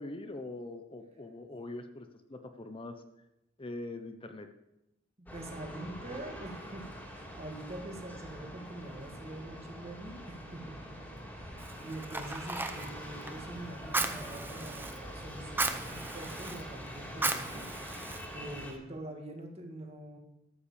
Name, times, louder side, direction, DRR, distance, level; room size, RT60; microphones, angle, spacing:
voice 1, 0.0-3.0 3.6-4.5, left 2 dB, 25° left, 7 dB, 0.8 m, -42 dB
voice 2, 5.2-17.7 18.3-20.2, right 1 dB, 30° right, 2 dB, 2.0 m, -45 dB
sound 1, 5.3-18.7, equal, 10° left, 2.7 m, -45 dB
Fire, 11.6-18.8, right 2 dB, 10° right, 0.8 m, -37 dB
13.0 x 7.9 x 6.8 m, 0.89 s
head